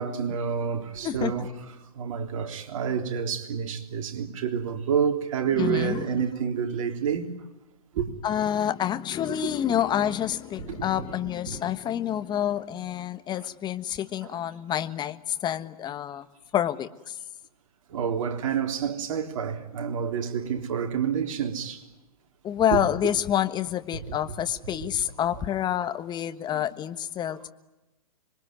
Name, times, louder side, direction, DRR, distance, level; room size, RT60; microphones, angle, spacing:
voice 1, 0.0-1.5 1.9-7.3 7.9-8.1 9.4-9.5 10.6-11.1 11.5-11.6 13.4-13.5 14.2-14.4 17.9-21.8 22.7-22.8 24.1-24.2 26.5-26.6, right 7 dB, 55° right, 3.7 m, -28 dB
voice 2, 5.6-6.2 8.2-16.3 16.5-17.2 22.4-27.5, left 10 dB, 20° left, 1.4 m, -28 dB
26.5 x 22.5 x 9.5 m
hypercardioid pair, 120°, 20 cm